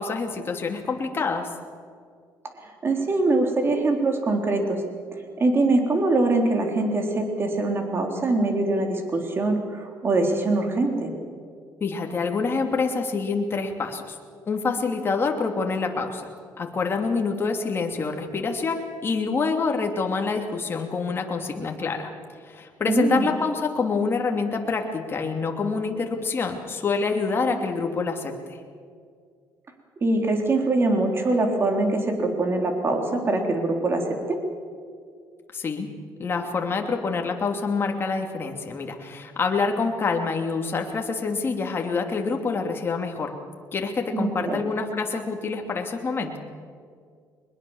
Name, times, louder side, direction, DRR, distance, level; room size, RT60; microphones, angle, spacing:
voice 1, 0.0-1.5 11.8-14.2 14.5-16.3 16.6-22.1 22.4-28.3 35.5-35.9 36.2-43.3 43.7-46.4, left 4 dB, 30° left, 3 dB, 2.9 m, -26 dB
voice 2, 2.6-4.8 5.4-11.1 22.9-23.3 30.0-34.4 44.1-44.6, right 2 dB, 30° right, 3 dB, 3.8 m, -23 dB
23.0 x 21.0 x 7.3 m, 2.1 s
cardioid pair, 120°, 7 cm